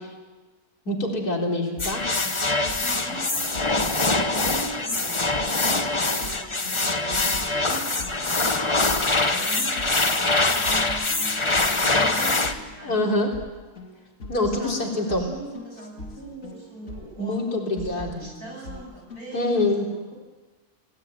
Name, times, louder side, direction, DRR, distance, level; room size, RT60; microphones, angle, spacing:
voice 1, 0.9-2.0 12.8-13.3 14.3-15.3 17.2-18.2 19.3-19.9, left 2 dB, 80° left, 0 dB, 4.4 m, -25 dB
sound 1, 1.8-19.4, left 2 dB, 55° left, 2.8 m, -42 dB
sound 2, 1.8-12.5, left 2 dB, 20° left, 1.2 m, -24 dB
voice 2, 2.8-13.1 14.3-20.1, right 2 dB, 75° right, -1 dB, 8.7 m, -41 dB
27.0 x 17.5 x 9.1 m, 1.3 s
omnidirectional pair, 1.6 m